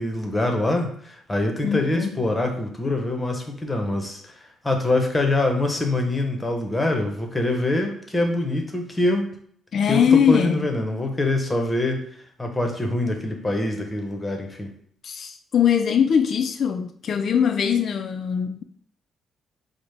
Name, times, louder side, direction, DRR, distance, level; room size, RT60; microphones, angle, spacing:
voice 1, 0.0-4.4 4.6-9.3 9.9-12.1 12.4-14.7, left 2 dB, 15° left, 0.8 m, -24 dB
voice 2, 1.6-2.2 9.7-10.7 15.0-18.6, left 7 dB, 55° left, 0.3 m, -21 dB
4.9 x 2.1 x 3.3 m
cardioid pair, 90°, 0 cm